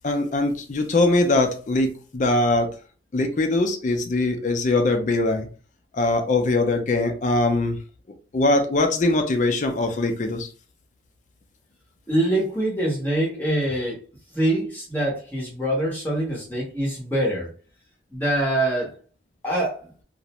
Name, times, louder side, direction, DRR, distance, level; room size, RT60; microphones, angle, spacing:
voice 1, 0.0-2.7 3.1-5.5 5.9-7.8 8.3-10.5, left 2 dB, 45° left, 5 dB, 0.4 m, -22 dB
voice 2, 12.1-14.0 14.3-17.5 18.1-18.9 19.4-19.8, right 1 dB, 10° left, -4 dB, 0.8 m, -24 dB
2.4 x 2.0 x 2.9 m, 0.37 s
head